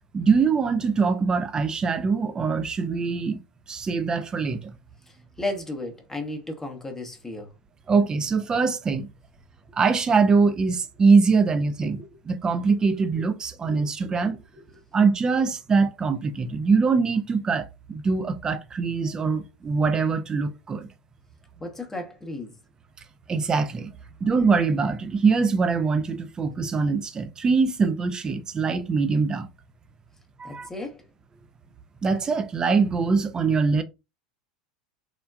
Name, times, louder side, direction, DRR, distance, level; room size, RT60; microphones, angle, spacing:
voice 1, 0.1-3.4 3.7-4.7 7.9-9.1 9.7-14.4 14.9-20.9 23.3-23.9 24.2-29.5 30.4-30.7 32.0-33.8, right 4 dB, 20° right, 0.4 m, -23 dB
voice 2, 5.1-7.5 11.8-11.9 13.6-14.1 14.5-14.6 21.6-22.5 30.4-31.0, left 2 dB, 10° left, 0.7 m, -34 dB
3.5 x 2.2 x 2.3 m
figure-of-eight pair, 80°, 4 cm